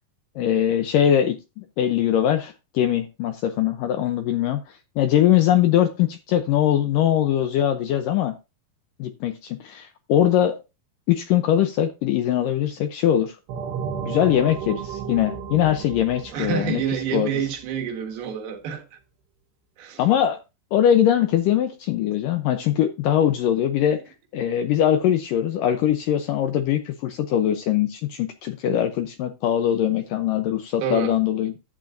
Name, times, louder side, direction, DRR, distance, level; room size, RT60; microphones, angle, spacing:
voice 1, 0.4-4.6 5.0-8.3 9.0-10.6 11.1-13.4 14.0-16.8 17.1-17.3 20.0-20.4 20.7-24.0 24.3-31.5, left 10 dB, 75° left, 2.1 m, -21 dB
sound 1, 13.5-17.9, right 7 dB, 90° right, 3.5 m, -34 dB
voice 2, 16.3-18.8 19.8-20.0 30.8-31.1, right 7 dB, 70° right, 3.3 m, -28 dB
12.0 x 8.8 x 2.6 m
omnidirectional pair, 4.7 m